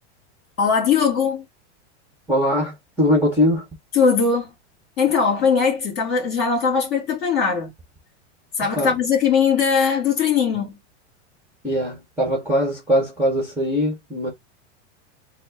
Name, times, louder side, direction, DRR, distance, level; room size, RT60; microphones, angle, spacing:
voice 1, 0.6-1.4 3.9-4.5 5.0-7.7 8.6-10.8, left 6 dB, 30° left, 2.6 m, -20 dB
voice 2, 2.3-3.6 8.8-9.0 11.6-14.3, equal, 5° right, 1.2 m, -21 dB
4.1 x 2.1 x 3.5 m
supercardioid pair, 155°, 35 cm